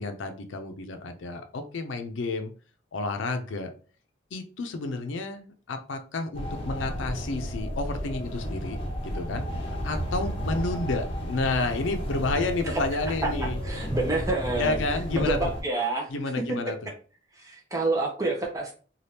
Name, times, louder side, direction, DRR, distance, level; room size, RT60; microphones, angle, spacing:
voice 1, 0.0-2.5 2.9-3.7 4.3-8.8 9.0-13.6 14.6-15.4 16.1-16.9, left 3 dB, 85° left, 6 dB, 0.5 m, -30 dB
sound 1, 6.3-15.6, equal, 30° left, 0.8 m, -32 dB
voice 2, 13.2-14.8 15.1-16.1 17.4-18.7, right 2 dB, 15° right, 0 dB, 0.5 m, -28 dB
3.3 x 2.3 x 2.8 m, 0.38 s
head